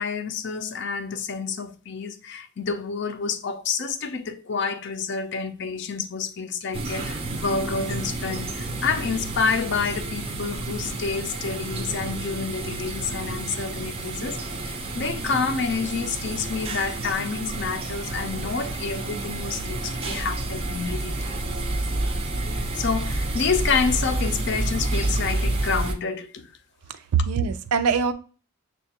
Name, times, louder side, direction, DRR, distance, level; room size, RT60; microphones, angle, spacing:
voice 1, 0.0-21.4 22.7-26.5, left 5 dB, 50° left, 0.4 m, -28 dB
sound 1, 6.7-25.9, right 2 dB, 25° right, 0.4 m, -30 dB
voice 2, 26.9-28.1, right 6 dB, 85° right, 0.4 m, -23 dB
6.6 x 2.3 x 2.7 m
head